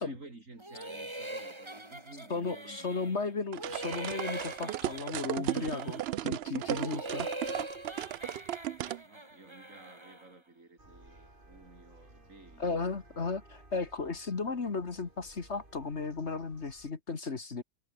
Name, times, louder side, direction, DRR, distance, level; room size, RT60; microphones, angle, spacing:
voice 1, 0.0-3.1 9.0-13.0, right 3 dB, 55° right, 4.6 m, -53 dB
sound 1, 0.6-3.2 3.6-6.1 6.5-10.3, right 1 dB, 15° right, 3.5 m, -42 dB
voice 2, 2.3-7.3 12.6-17.6, left 4 dB, 45° left, 2.0 m, -35 dB
sound 2, 3.5-9.0, right 13 dB, 80° right, 0.5 m, -35 dB
sound 3, 10.8-16.9, right 1 dB, 35° right, 5.2 m, -58 dB
omnidirectional pair, 1.6 m